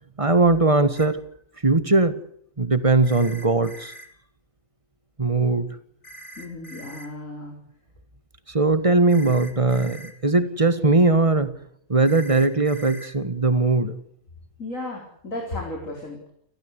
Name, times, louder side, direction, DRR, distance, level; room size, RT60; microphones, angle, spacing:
voice 1, 0.2-1.2 1.6-2.2 2.6-3.9 5.2-5.7 8.5-11.6 11.9-14.0, right 3 dB, 25° right, 12 dB, 1.7 m, -20 dB
sound 1, 1.0-1.1 3.0-4.1 6.0-7.1 9.1-10.1 12.0-13.1, right 1 dB, 60° left, 3.6 m, -43 dB
voice 2, 6.4-7.5 14.6-16.2, left 2 dB, 90° left, 1 dB, 4.8 m, -34 dB
29.5 x 14.0 x 8.2 m, 0.68 s
omnidirectional pair, 1.3 m